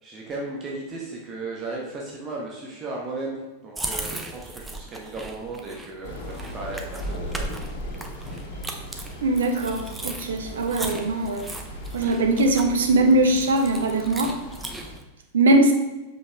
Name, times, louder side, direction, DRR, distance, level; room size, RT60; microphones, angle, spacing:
voice 1, 0.0-7.6, right 2 dB, 25° right, -3 dB, 1.2 m, -35 dB
sound 1, 3.7-15.0, right 2 dB, 10° right, 0.8 m, -37 dB
Thunder / Rain, 6.0-15.0, equal, 55° left, 1.7 m, -38 dB
voice 2, 9.2-11.5 11.9-14.4 15.3-15.7, right 2 dB, 65° right, 5 dB, 1.0 m, -21 dB
6.9 x 5.4 x 3.4 m, 1.1 s
figure-of-eight pair, 90°, 0 cm